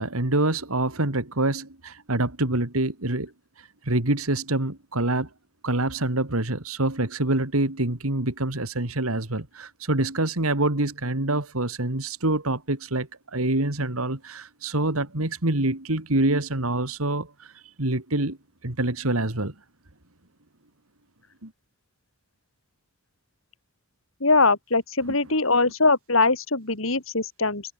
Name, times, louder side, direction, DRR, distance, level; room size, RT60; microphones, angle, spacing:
voice 1, 0.0-3.3 3.9-5.3 5.6-17.5 17.8-18.4 18.6-19.5 21.4-21.5, right 2 dB, 85° right, 2.9 m, -26 dB
voice 2, 24.2-27.6, left 3 dB, 70° left, 3.7 m, -22 dB
head